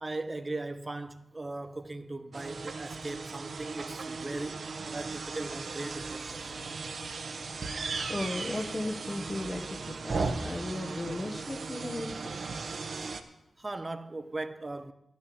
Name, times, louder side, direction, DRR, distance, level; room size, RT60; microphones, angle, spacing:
voice 1, 0.0-6.5 13.6-14.9, right 2 dB, 25° right, 0.8 m, -38 dB
sound 1, 2.3-13.2, right 4 dB, 55° right, 0.9 m, -37 dB
voice 2, 8.1-12.4, left 1 dB, 25° left, 1.0 m, -36 dB
12.0 x 7.3 x 9.2 m
wide cardioid pair, 110°, 0 cm